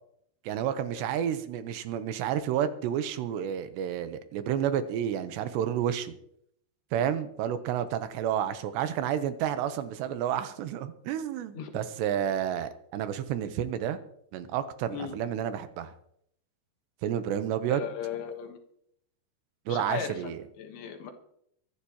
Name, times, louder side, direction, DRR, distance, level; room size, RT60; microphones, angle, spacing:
voice 1, 0.5-6.1 6.9-14.0 14.3-15.9 17.0-17.8 19.7-20.4, right 9 dB, 85° right, 10 dB, 3.1 m, -30 dB
voice 2, 17.7-18.6 19.7-21.1, left 7 dB, 70° left, 5 dB, 3.0 m, -37 dB
24.0 x 11.5 x 3.0 m, 0.71 s
omnidirectional pair, 5.0 m